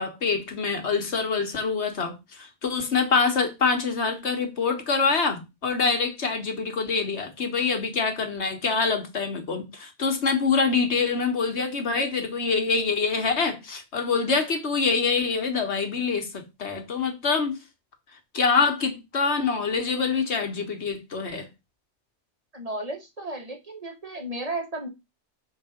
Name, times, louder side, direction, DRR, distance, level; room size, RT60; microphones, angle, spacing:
voice 1, 0.0-17.6 18.3-21.5, left 4 dB, 85° left, 1.6 m, -25 dB
voice 2, 22.5-24.9, right 1 dB, 35° right, 1.7 m, -34 dB
6.6 x 3.9 x 5.0 m
omnidirectional pair, 1.1 m